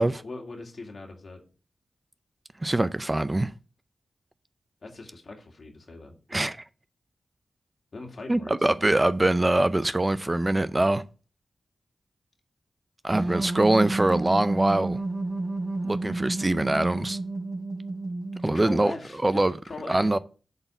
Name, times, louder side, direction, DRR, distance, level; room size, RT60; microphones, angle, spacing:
voice 1, 0.0-1.4 4.8-6.2 7.9-8.6 18.4-20.1, left 3 dB, 55° left, 2.2 m, -40 dB
voice 2, 2.6-3.5 6.3-6.6 8.3-11.0 13.0-15.0 15.8-17.2 18.4-18.9 19.2-19.5 19.9-20.2, right 2 dB, 20° right, 0.4 m, -23 dB
sound 1, 13.1-18.8, right 2 dB, 50° right, 3.3 m, -31 dB
8.0 x 4.1 x 6.9 m
cardioid pair, 70°, 0 cm